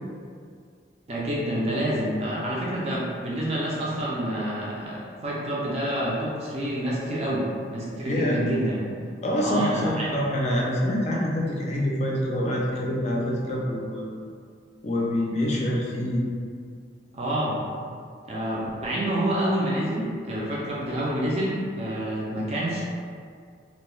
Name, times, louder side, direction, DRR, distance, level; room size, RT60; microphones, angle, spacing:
voice 1, 1.1-8.8 9.4-10.2 17.1-17.7 18.3-22.8, right 1 dB, 35° right, -5 dB, 0.4 m, -28 dB
voice 2, 8.1-8.4 9.2-14.0 14.8-16.2, left 1 dB, 40° left, -3 dB, 0.4 m, -26 dB
2.2 x 2.2 x 3.1 m, 2.1 s
head